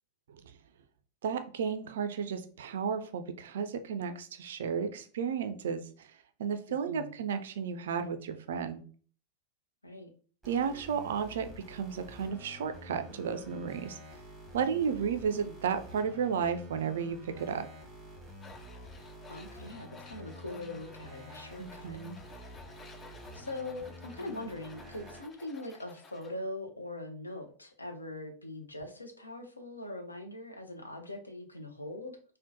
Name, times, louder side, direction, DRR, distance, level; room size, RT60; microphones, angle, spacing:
voice 1, 1.2-6.1 6.4-8.8 10.5-14.0 14.5-17.7 21.6-22.2, right 7 dB, 60° right, 9 dB, 0.3 m, -33 dB
sound 1, 10.4-25.2, equal, 5° right, 0.9 m, -49 dB
Tools, 18.4-26.3, left 3 dB, 20° left, 0.3 m, -54 dB
voice 2, 19.3-22.0 23.3-32.2, left 2 dB, 80° left, 4 dB, 0.5 m, -42 dB
3.6 x 2.1 x 2.6 m, 0.42 s
figure-of-eight pair, 90°, 0 cm